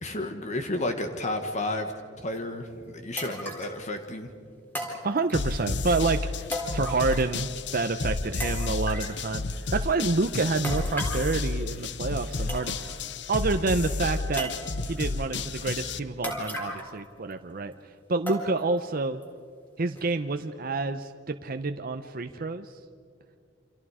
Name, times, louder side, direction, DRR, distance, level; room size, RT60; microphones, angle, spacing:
voice 1, 0.0-1.9 2.2-4.3, left 1 dB, 40° left, 6 dB, 1.5 m, -32 dB
sound 1, 2.4-2.5 3.2-3.8 4.7-5.6 6.5-7.4 7.7-7.8 8.4-9.2 10.6-11.3 12.1-12.2 12.5-13.0 13.4-13.5 14.4-15.0 16.2-17.0 17.3-17.4 18.3-18.8 19.2-19.3 20.0-20.1, equal, 10° left, 4.0 m, -35 dB
voice 2, 5.0-6.2 6.7-7.5 7.7-13.0 13.3-14.5 14.8-17.7 18.1-19.2 19.8-22.7, right 3 dB, 50° right, 7 dB, 0.7 m, -28 dB
sound 2, 5.3-16.0, left 3 dB, 65° left, 0.8 m, -31 dB
28.5 x 26.5 x 4.9 m, 2.2 s
head